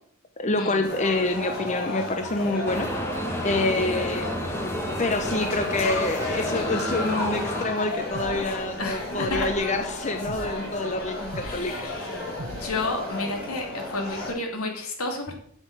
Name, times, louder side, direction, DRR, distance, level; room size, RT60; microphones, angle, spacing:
voice 1, 0.4-4.3 5.0-11.9, left 2 dB, 35° left, 6 dB, 0.8 m, -27 dB
sound 1, 0.8-14.3, left 2 dB, 50° left, 3.6 m, -33 dB
sound 2, 2.7-7.6, equal, 10° left, 1.8 m, -31 dB
sound 3, 7.4-13.2, right 2 dB, 80° right, 1.0 m, -42 dB
voice 2, 8.8-9.5 11.4-12.2 12.5-15.3, left 2 dB, 90° left, 2 dB, 2.9 m, -31 dB
7.7 x 7.7 x 7.6 m, 0.63 s
head